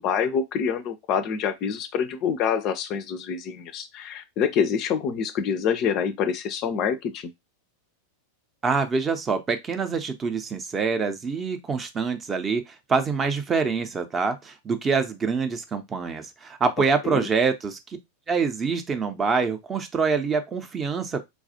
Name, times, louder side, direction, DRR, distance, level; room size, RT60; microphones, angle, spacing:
voice 1, 0.0-7.3 17.0-17.3, left 7 dB, 40° left, 0.4 m, -26 dB
voice 2, 8.6-17.8 18.3-21.2, right 5 dB, 20° right, 0.6 m, -25 dB
4.2 x 2.3 x 2.7 m
figure-of-eight pair, 90°, 0 cm